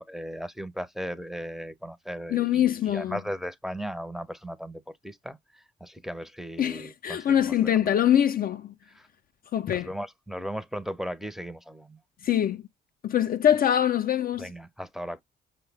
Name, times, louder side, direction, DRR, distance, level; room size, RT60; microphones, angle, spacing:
voice 1, 0.0-8.0 8.9-9.1 9.7-12.0 14.4-15.2, equal, ahead, 0.6 m, -37 dB
voice 2, 2.3-3.2 6.6-8.7 9.5-9.9 12.2-12.6 13.0-14.5, left 10 dB, 50° left, 0.4 m, -24 dB
5.4 x 2.0 x 3.3 m
cardioid pair, 90°, 20 cm